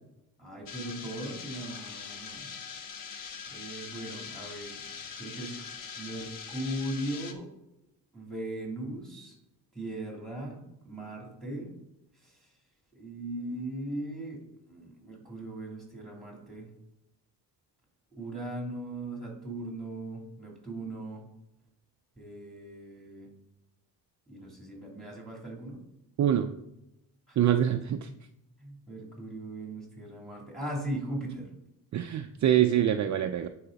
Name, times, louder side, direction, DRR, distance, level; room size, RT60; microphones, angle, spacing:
voice 1, 0.4-2.5 3.5-7.5 8.1-9.4 9.7-11.8 12.2-12.5 12.9-16.7 18.2-21.3 22.2-23.3 24.3-25.8 27.3-27.4 28.6-31.5, right 1 dB, ahead, -2 dB, 2.9 m, -39 dB
sound 1, 0.7-7.3, left 6 dB, 55° left, 1.0 m, -42 dB
voice 2, 27.4-28.1 31.9-33.5, right 10 dB, 45° right, 7 dB, 0.5 m, -25 dB
10.0 x 5.0 x 4.0 m, 0.85 s
cardioid pair, 125°, 40 cm